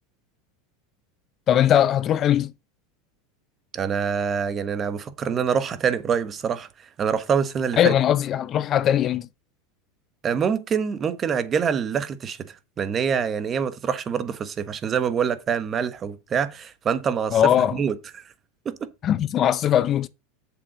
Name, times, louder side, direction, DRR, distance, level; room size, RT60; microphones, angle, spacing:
voice 1, 1.5-2.5 7.8-9.3 17.3-17.8 19.0-20.1, left 10 dB, 35° left, 0.6 m, -20 dB
voice 2, 3.7-6.7 7.0-7.9 10.2-17.4 17.7-18.2 18.6-18.9, right 7 dB, 30° right, 1.2 m, -25 dB
7.7 x 7.0 x 5.0 m
supercardioid pair, 115°, 0 cm